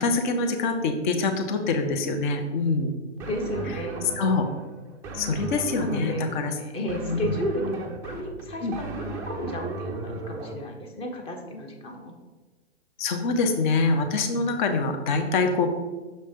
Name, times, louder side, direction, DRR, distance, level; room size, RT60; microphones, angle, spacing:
voice 1, 0.0-2.9 4.2-4.5 5.1-6.5 6.9-7.3 8.6-8.7 13.0-15.7, left 3 dB, 45° left, 5 dB, 0.8 m, -25 dB
sound 1, 3.2-10.5, right 3 dB, 10° right, 0.4 m, -36 dB
voice 2, 3.3-4.1 5.8-12.1, equal, 15° left, 3 dB, 0.8 m, -33 dB
6.5 x 3.3 x 5.5 m, 1.2 s
figure-of-eight pair, 120°, 35 cm